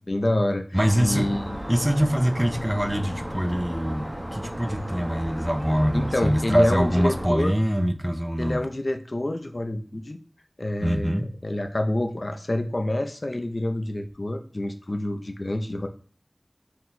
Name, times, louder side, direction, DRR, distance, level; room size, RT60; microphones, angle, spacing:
voice 1, 0.1-0.6 1.0-1.6 5.9-7.5 8.4-10.2 10.6-15.9, left 1 dB, 65° left, 6 dB, 0.5 m, -27 dB
voice 2, 0.7-1.3 1.7-4.1 4.3-8.6 10.8-11.3, equal, 15° right, 8 dB, 0.4 m, -23 dB
sound 1, 0.7-7.3, equal, 40° right, 0.8 m, -34 dB
4.4 x 2.1 x 3.9 m, 0.42 s
wide cardioid pair, 45°, 0 cm